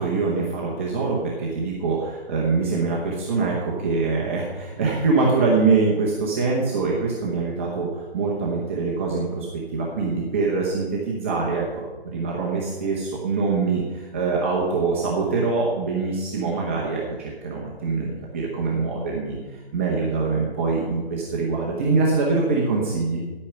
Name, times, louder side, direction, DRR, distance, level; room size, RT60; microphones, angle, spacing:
voice 1, 0.0-9.5 9.7-23.2, right 4 dB, 15° right, -3 dB, 0.8 m, -24 dB
10.5 x 8.5 x 5.7 m, 1.2 s
hypercardioid pair, 160°, 32 cm